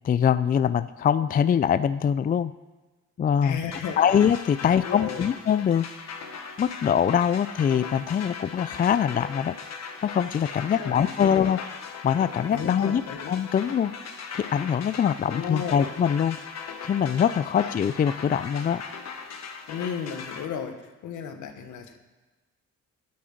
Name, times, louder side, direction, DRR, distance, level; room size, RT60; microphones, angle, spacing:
voice 1, 0.0-2.5 3.2-3.6 4.0-5.9 6.6-9.6 10.0-11.6 12.0-13.0 13.3-13.9 14.3-16.4 16.8-18.8, left 8 dB, 30° left, 14 dB, 0.4 m, -23 dB
voice 2, 3.4-4.1 4.6-5.3 10.7-11.5 12.5-13.3 15.2-15.9 17.5-17.8 19.7-20.7 21.0-22.0, left 7 dB, 75° left, 7 dB, 1.5 m, -34 dB
sound 1, 3.7-20.5, left 5 dB, 60° left, 1.5 m, -39 dB
9.5 x 8.5 x 7.7 m, 1.2 s
cardioid pair, 90°, 30 cm